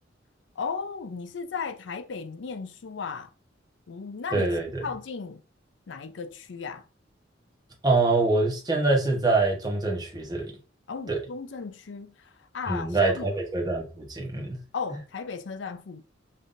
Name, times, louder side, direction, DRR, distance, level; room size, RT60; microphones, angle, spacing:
voice 1, 0.6-3.3 3.9-4.5 4.8-5.4 5.9-6.8 10.9-13.3 14.7-16.0, left 5 dB, 75° left, 0.5 m, -35 dB
voice 2, 4.3-4.8 7.8-10.5 11.1-11.2 12.7-14.6, right 3 dB, 20° right, 1.0 m, -25 dB
5.4 x 2.6 x 2.5 m
head